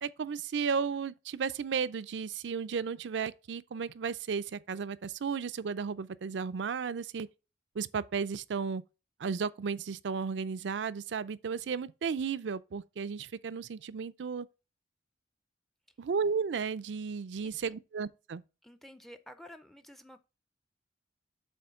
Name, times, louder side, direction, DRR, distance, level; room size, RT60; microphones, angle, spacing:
voice 1, 0.0-7.3 7.8-8.8 9.2-14.5 16.0-18.4, right 6 dB, 75° right, 0.4 m, -34 dB
voice 2, 18.6-20.2, equal, ahead, 0.4 m, -51 dB
7.8 x 3.1 x 5.6 m
head